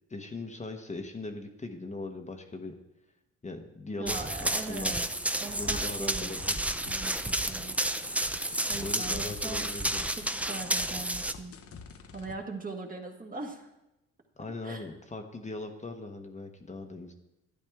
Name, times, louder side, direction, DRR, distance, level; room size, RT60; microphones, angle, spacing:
voice 1, 0.1-2.8 3.4-5.0 5.6-6.5 8.8-10.0 14.4-17.1, left 2 dB, 25° left, 4 dB, 1.0 m, -40 dB
voice 2, 4.0-5.0 5.4-6.3 6.9-7.7 8.7-9.6 10.2-11.6 12.1-13.7 14.6-14.9, right 3 dB, 30° right, 2 dB, 1.5 m, -40 dB
Run, 4.1-11.3, right 1 dB, 5° right, 0.5 m, -31 dB
sound 1, 6.4-12.4, left 6 dB, 50° left, 0.9 m, -49 dB
12.0 x 9.9 x 3.5 m, 0.94 s
cardioid pair, 90°, 30 cm